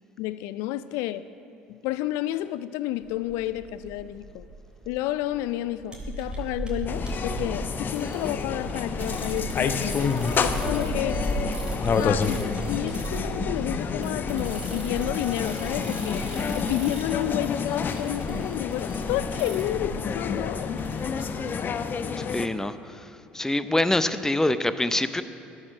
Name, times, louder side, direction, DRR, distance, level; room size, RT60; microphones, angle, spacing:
voice 1, 0.2-1.3 1.7-4.5 4.9-11.2 12.0-20.8, left 14 dB, 70° left, 0.4 m, -31 dB
sound 1, 3.0-21.3, right 1 dB, 20° right, 3.6 m, -36 dB
sound 2, 6.9-22.5, left 6 dB, 40° left, 0.8 m, -29 dB
voice 2, 22.2-25.2, left 1 dB, 10° left, 0.7 m, -25 dB
13.5 x 10.5 x 6.3 m
hypercardioid pair, 60°, 5 cm